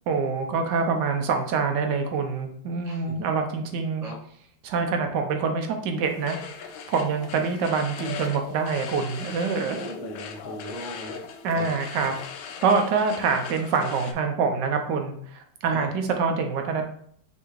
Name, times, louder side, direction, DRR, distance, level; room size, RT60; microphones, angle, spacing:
voice 1, 0.1-4.1 4.6-6.4 6.9-9.8 11.4-12.1 12.6-16.8, right 5 dB, 75° right, 5 dB, 1.1 m, -25 dB
voice 2, 2.8-3.2 4.0-4.1 9.7-11.2 11.5-11.7 15.7-15.9, right 1 dB, 5° right, -3 dB, 0.3 m, -38 dB
sound 1, 6.0-14.1, left 6 dB, 80° left, 1.3 m, -39 dB
5.7 x 2.6 x 3.0 m, 0.62 s
omnidirectional pair, 2.0 m